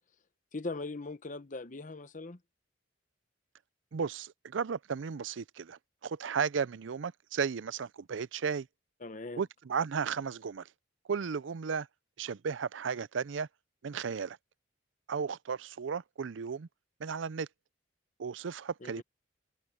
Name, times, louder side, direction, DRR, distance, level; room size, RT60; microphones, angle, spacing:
voice 1, 0.5-2.4 9.0-9.4 18.8-19.0, left 3 dB, 40° left, 0.9 m, -40 dB
voice 2, 3.9-8.7 9.4-10.7 11.1-11.9 12.2-13.5 13.8-14.4 15.1-16.7 17.0-17.5 18.2-19.0, right 6 dB, 80° right, 0.5 m, -34 dB
head